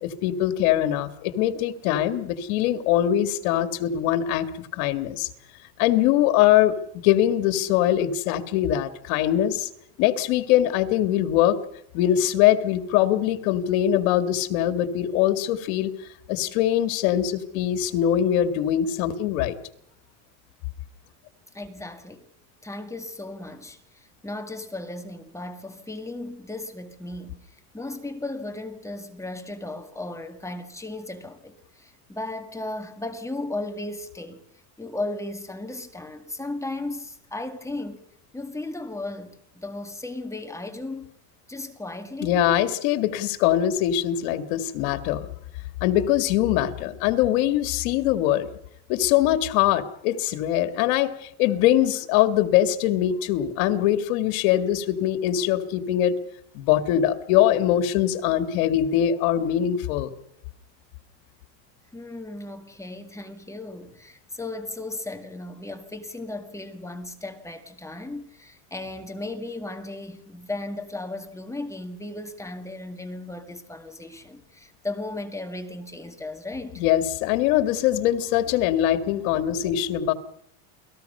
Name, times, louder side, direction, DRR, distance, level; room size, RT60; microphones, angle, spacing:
voice 1, 0.0-5.3 5.8-6.8 7.0-9.7 10.0-11.6 11.9-15.9 16.3-19.6 42.2-45.3 45.8-48.5 48.9-56.2 56.5-60.1 76.8-80.1, left 11 dB, 85° left, 2.1 m, -22 dB
voice 2, 21.5-22.2 22.6-34.4 34.8-38.0 38.3-41.1 41.5-42.4 61.9-76.8, left 2 dB, 5° left, 1.9 m, -35 dB
29.0 x 19.5 x 5.6 m
cardioid pair, 135°, 42 cm